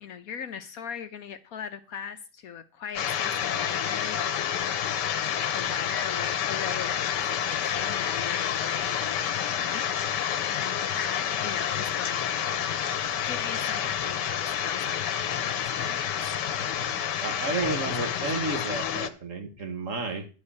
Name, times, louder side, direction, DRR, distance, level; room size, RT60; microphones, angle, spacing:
voice 1, 0.0-12.3 13.2-16.2 17.5-18.6 19.6-19.7, left 7 dB, 65° left, 1.0 m, -39 dB
sound 1, 3.0-19.1, left 9 dB, 80° left, 1.5 m, -29 dB
voice 2, 16.6-20.3, right 3 dB, 50° right, 1.4 m, -32 dB
11.0 x 4.9 x 8.3 m
omnidirectional pair, 1.9 m